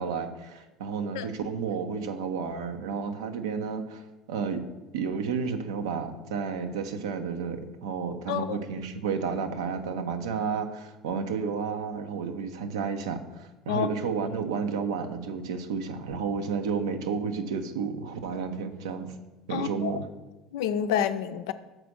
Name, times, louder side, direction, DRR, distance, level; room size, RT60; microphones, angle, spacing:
voice 1, 0.0-4.0 4.3-4.6 4.9-19.1 19.5-20.1, right 5 dB, 70° right, 7 dB, 0.7 m, -31 dB
voice 2, 8.3-8.6 13.7-13.9 19.5-19.9 20.5-21.5, left 9 dB, 65° left, 10 dB, 0.5 m, -28 dB
6.2 x 5.0 x 6.3 m, 1.1 s
figure-of-eight pair, 65°, 3 cm